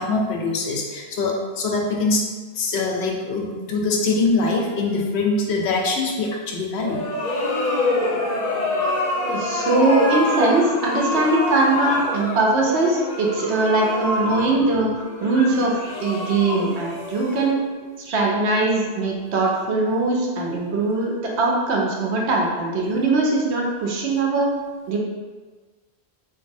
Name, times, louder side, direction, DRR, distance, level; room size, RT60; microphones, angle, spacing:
voice 1, 0.0-2.2 2.5-7.1, left 3 dB, 85° left, 0 dB, 0.9 m, -23 dB
sound 1, 6.8-17.8, left 2 dB, 50° left, 0.6 m, -26 dB
voice 2, 9.3-14.9 15.2-17.6 18.0-21.1 21.4-24.5 24.9-25.0, right 2 dB, 85° right, -2 dB, 0.9 m, -21 dB
3.9 x 2.6 x 2.6 m, 1.4 s
omnidirectional pair, 1.1 m